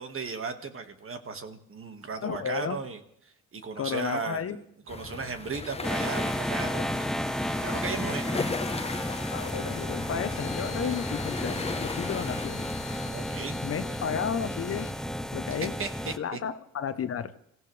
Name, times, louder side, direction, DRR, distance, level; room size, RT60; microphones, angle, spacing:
voice 1, 0.0-3.0 3.5-4.6 4.9-7.1 7.6-8.3 13.1-13.6 13.8-14.1 15.5-16.4, right 4 dB, 45° right, 7 dB, 1.9 m, -36 dB
voice 2, 2.2-2.8 3.8-4.6 9.3-12.7 13.6-14.9 15.3-15.7 16.2-17.3, left 7 dB, 50° left, 11 dB, 1.0 m, -32 dB
sound 1, 4.9-13.1, left 4 dB, 20° left, 1.1 m, -37 dB
sound 2, 5.8-16.2, equal, ahead, 0.6 m, -32 dB
Bowed string instrument, 10.2-15.0, left 11 dB, 75° left, 1.7 m, -47 dB
26.5 x 16.0 x 3.4 m, 0.69 s
cardioid pair, 90°, 30 cm